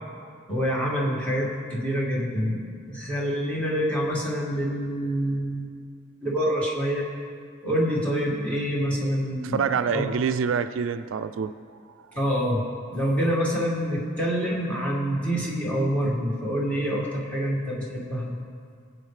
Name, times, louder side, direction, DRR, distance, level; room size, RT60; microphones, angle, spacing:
voice 1, 0.5-5.7 6.2-7.0 7.6-9.6 9.9-10.0 12.1-12.6 12.9-18.4, equal, 5° left, -5 dB, 2.0 m, -26 dB
voice 2, 9.4-11.5 12.0-12.1, right 6 dB, 75° right, 10 dB, 0.4 m, -26 dB
18.5 x 7.9 x 3.3 m, 2.2 s
head